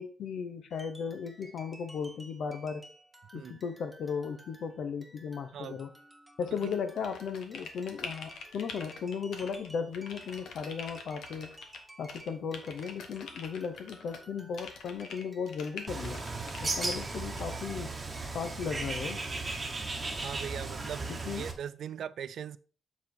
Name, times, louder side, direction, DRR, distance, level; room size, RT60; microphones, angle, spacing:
voice 1, 0.0-2.9 3.3-5.9 6.4-11.5 12.0-16.2 16.6-17.9 18.3-19.2 21.1-21.5, left 6 dB, 70° left, 0.8 m, -36 dB
sound 1, 0.7-19.8, right 1 dB, 5° right, 1.1 m, -55 dB
voice 2, 5.5-5.8 6.6-6.7 20.2-22.6, right 8 dB, 70° right, 0.4 m, -40 dB
sound 2, 6.5-9.7 9.9-11.8 12.1-14.3 14.6-17.4, left 4 dB, 90° left, 1.2 m, -45 dB
Bird, 15.9-21.5, right 3 dB, 25° right, 1.1 m, -36 dB
7.3 x 4.0 x 4.4 m
wide cardioid pair, 135°, 0 cm